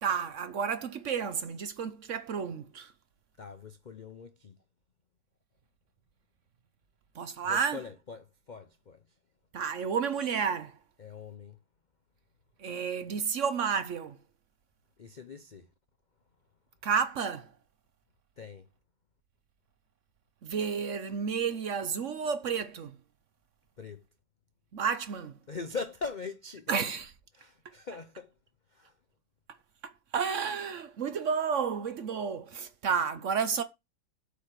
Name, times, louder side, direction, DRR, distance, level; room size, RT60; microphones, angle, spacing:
voice 1, 0.0-2.9 7.2-7.8 9.5-10.7 12.6-14.2 16.8-17.5 20.4-23.0 24.7-25.4 26.7-27.1 29.8-33.6, right 6 dB, 55° right, 0.9 m, -31 dB
voice 2, 3.4-4.6 7.4-9.0 11.0-11.6 15.0-15.7 18.4-18.7 23.8-24.0 25.5-26.9 27.3-28.3 28.7-29.0, left 4 dB, 85° left, 0.4 m, -42 dB
7.9 x 4.5 x 6.6 m
omnidirectional pair, 1.9 m